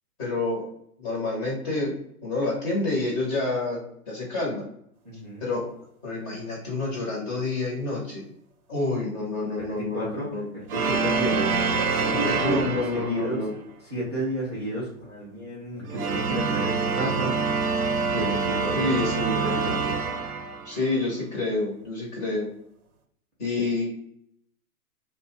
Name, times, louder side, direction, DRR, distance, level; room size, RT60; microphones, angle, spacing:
voice 1, 0.2-0.6 1.0-2.0 2.2-3.8 4.1-4.6 5.4-5.6 6.0-8.2 8.7-10.5 12.4-13.5 18.7-19.5 20.6-22.5 23.4-23.9, left 2 dB, 15° left, -3 dB, 0.6 m, -28 dB
voice 2, 5.0-5.5 9.6-11.5 11.9-12.6 12.9-13.4 13.8-17.7 18.1-19.9, right 1 dB, 20° right, -9 dB, 0.3 m, -32 dB
sound 1, 10.7-13.5 15.8-21.0, right 4 dB, 75° right, 0.6 m, -26 dB
2.6 x 2.2 x 3.0 m, 0.69 s
hypercardioid pair, 140°, 45 cm